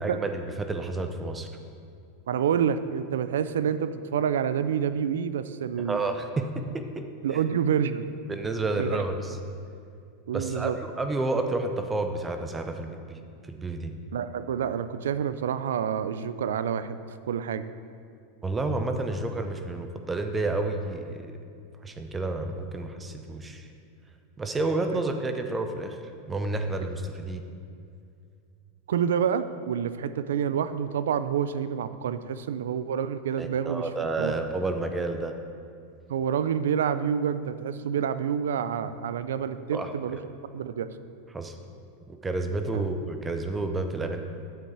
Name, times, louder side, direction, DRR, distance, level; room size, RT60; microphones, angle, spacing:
voice 1, 0.0-1.5 5.9-7.0 7.3-7.4 8.3-9.4 10.3-10.7 11.0-13.9 18.4-21.3 21.8-23.7 24.4-26.0 26.3-27.4 33.4-35.3 39.7-39.9 41.3-41.6 42.1-44.2, right 2 dB, 15° right, 6 dB, 0.7 m, -30 dB
voice 2, 2.3-6.0 7.2-8.1 8.8-9.0 10.3-10.8 14.1-17.0 17.3-17.7 28.9-33.8 34.2-34.3 36.1-40.2 40.5-40.9 42.7-42.8, right 8 dB, 90° right, 13 dB, 0.4 m, -28 dB
9.3 x 7.2 x 4.7 m, 2.4 s
supercardioid pair, 130°, 0 cm